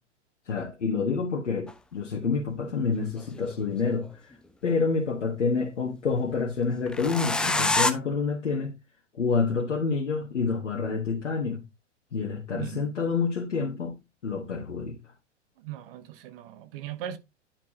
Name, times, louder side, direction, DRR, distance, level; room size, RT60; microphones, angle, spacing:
voice 1, 0.5-4.1 4.6-8.7 9.2-11.6 12.1-13.9 14.2-15.0, left 4 dB, 80° left, 1.5 m, -28 dB
sound 1, 1.7-1.8 3.0-4.1 6.9-7.9, left 2 dB, 5° left, 0.3 m, -26 dB
voice 2, 12.5-12.9 15.6-17.2, right 11 dB, 50° right, 1.1 m, -38 dB
10.5 x 4.7 x 2.9 m
hypercardioid pair, 105°, 35 cm